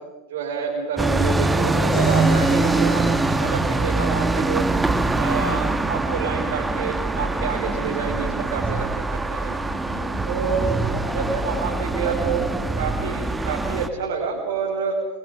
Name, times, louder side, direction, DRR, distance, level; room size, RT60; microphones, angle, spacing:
voice 1, 0.3-4.8 5.2-9.6 10.3-10.7 11.1-12.5 12.8-15.1, right 5 dB, 80° right, -2 dB, 5.5 m, -28 dB
sound 1, 1.0-13.9, right 2 dB, 10° right, 1.9 m, -23 dB
sound 2, 1.9-5.8, left 5 dB, 50° left, 5.6 m, -38 dB
voice 2, 2.5-2.9 4.9-5.4 9.7-12.7, left 3 dB, 30° left, 0 dB, 7.7 m, -37 dB
28.5 x 25.5 x 5.2 m, 1.2 s
hypercardioid pair, 95°, 0 cm